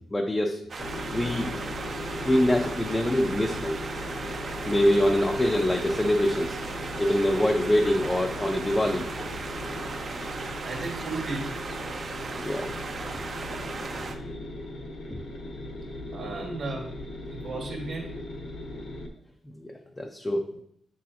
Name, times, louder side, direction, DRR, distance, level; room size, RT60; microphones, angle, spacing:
voice 1, 0.1-0.6 1.1-1.5 2.2-3.8 4.7-6.6 7.0-9.4 12.4-12.7 13.0-13.1 19.6-20.5, left 1 dB, 10° left, 2 dB, 0.5 m, -25 dB
sound 1, 0.7-14.1, right 4 dB, 45° right, 0.7 m, -37 dB
sound 2, 0.8-19.1, left 1 dB, 55° left, 1.0 m, -38 dB
voice 2, 10.6-11.5 16.1-17.0 17.3-18.2, right 3 dB, 65° right, -3 dB, 1.9 m, -34 dB
8.3 x 6.2 x 3.0 m, 0.68 s
wide cardioid pair, 145°, 0 cm